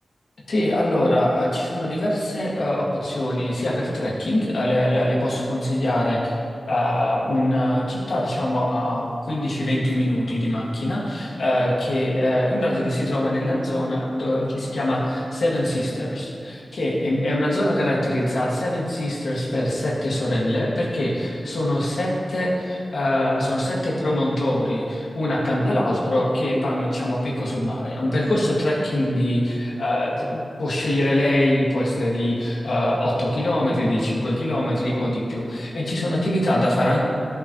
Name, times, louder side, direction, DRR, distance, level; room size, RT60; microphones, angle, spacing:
voice 1, 0.5-6.3 6.7-37.0, left 1 dB, 85° left, -5 dB, 1.9 m, -23 dB
14.0 x 5.5 x 3.1 m, 2.4 s
wide cardioid pair, 110°, 0 cm